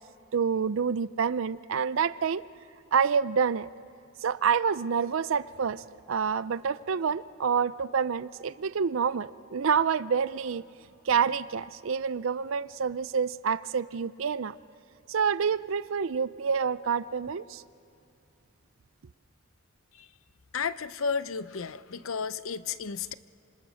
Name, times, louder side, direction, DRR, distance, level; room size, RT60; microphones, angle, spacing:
voice 1, 0.3-2.4 2.9-3.7 4.2-10.6 11.1-14.5 15.1-17.6, right 6 dB, 70° right, 16 dB, 0.5 m, -27 dB
voice 2, 20.5-23.1, left 5 dB, 80° left, 14 dB, 0.7 m, -32 dB
26.5 x 26.0 x 6.4 m, 2.6 s
head